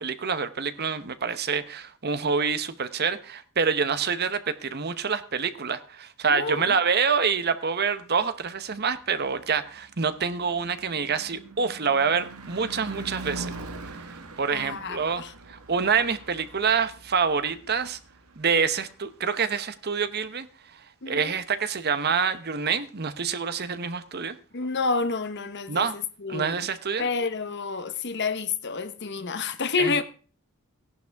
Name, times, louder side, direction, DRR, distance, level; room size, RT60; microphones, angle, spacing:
voice 1, 0.0-13.5 13.8-14.0 14.4-15.2 15.5-18.0 18.4-20.5 21.1-24.3 25.7-25.9 26.3-27.1 29.8-29.9, right 6 dB, 45° right, 0.9 m, -26 dB
voice 2, 6.3-6.8 14.5-15.3 21.0-21.3 24.5-26.7 27.0-30.0, left 4 dB, 50° left, 1.1 m, -29 dB
Car passing by / Truck / Engine, 9.3-19.5, right 2 dB, 80° right, 1.5 m, -43 dB
17.0 x 11.0 x 3.5 m
head